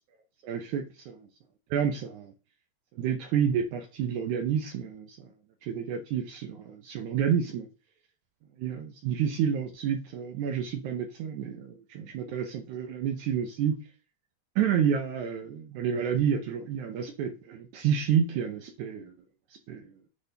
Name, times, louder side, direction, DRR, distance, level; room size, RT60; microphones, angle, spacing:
voice 1, 0.4-1.3 1.7-2.3 2.9-5.3 5.6-7.7 8.6-13.7 14.6-19.1 19.5-19.9, right 8 dB, 85° right, 1.7 m, -29 dB
9.9 x 3.5 x 2.8 m
omnidirectional pair, 4.3 m